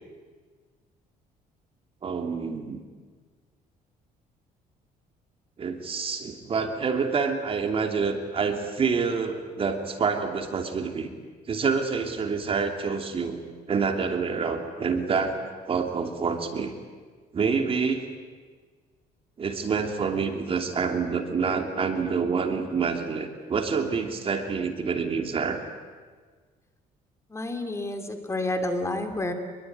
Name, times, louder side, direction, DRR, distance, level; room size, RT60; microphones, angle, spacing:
voice 1, 2.0-2.8 5.6-11.1 11.5-16.7 17.3-18.0 19.4-25.6, right 5 dB, 35° right, 5 dB, 2.9 m, -27 dB
voice 2, 27.3-29.3, left 2 dB, 15° left, 6 dB, 2.8 m, -29 dB
26.0 x 22.0 x 9.5 m, 1.5 s
cardioid pair, 125°, 16 cm